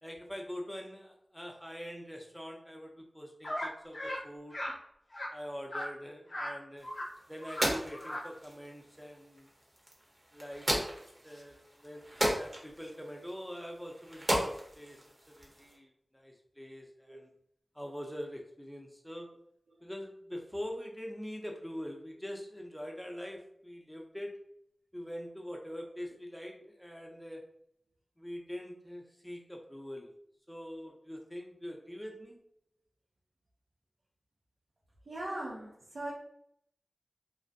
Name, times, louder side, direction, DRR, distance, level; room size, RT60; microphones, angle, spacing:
voice 1, 0.0-4.6 5.3-6.9 7.3-9.5 10.3-10.7 11.2-12.1 12.3-15.0 15.3-17.3 17.7-19.3 19.8-24.4 24.9-27.4 28.2-30.1 30.5-32.4, equal, 5° left, 1 dB, 0.5 m, -44 dB
sound 1, 3.4-3.7 3.9-4.2 4.5-4.8 5.1-5.3 5.7-5.9 6.3-6.5 6.8-7.1 7.4-7.7 7.9-8.2, left 1 dB, 60° left, 0.6 m, -37 dB
sound 2, 6.8-15.8, equal, 30° right, 0.7 m, -37 dB
voice 2, 35.1-36.1, right 1 dB, 80° right, -5 dB, 0.5 m, -39 dB
2.4 x 2.1 x 2.5 m, 0.69 s
wide cardioid pair, 55°, 0 cm